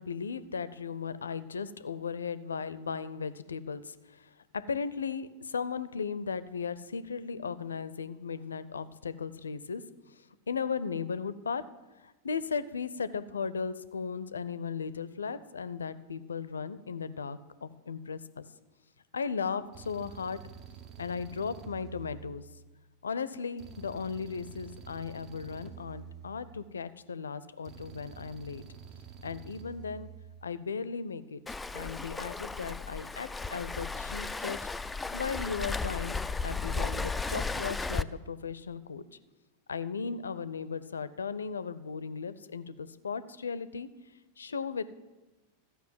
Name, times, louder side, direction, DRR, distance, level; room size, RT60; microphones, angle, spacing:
voice 1, 0.0-9.8 10.1-11.6 12.0-18.5 19.1-20.4 21.0-22.4 23.0-28.6 29.2-30.1 30.4-31.4 31.7-34.6 35.1-39.0 39.7-43.9 44.4-44.8, left 5 dB, 70° left, 15 dB, 0.5 m, -36 dB
sound 1, 19.7-22.8 23.6-26.9 27.7-30.5, right 7 dB, 35° right, 0.9 m, -48 dB
Waves surf, 31.5-38.0, left 4 dB, 10° left, 0.3 m, -35 dB
13.5 x 5.6 x 7.6 m, 1.1 s
figure-of-eight pair, 90°, 0 cm